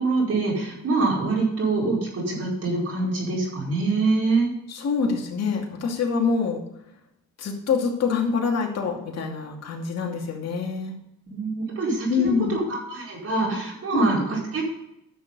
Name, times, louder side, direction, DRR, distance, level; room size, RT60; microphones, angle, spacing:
voice 1, 0.0-4.5 11.3-14.6, right 3 dB, 55° right, -4 dB, 4.9 m, -25 dB
voice 2, 4.7-6.6 7.4-10.9 12.1-12.6 13.9-14.1, left 5 dB, 55° left, 0 dB, 2.6 m, -25 dB
11.5 x 6.6 x 5.4 m, 0.82 s
cardioid pair, 90°, 30 cm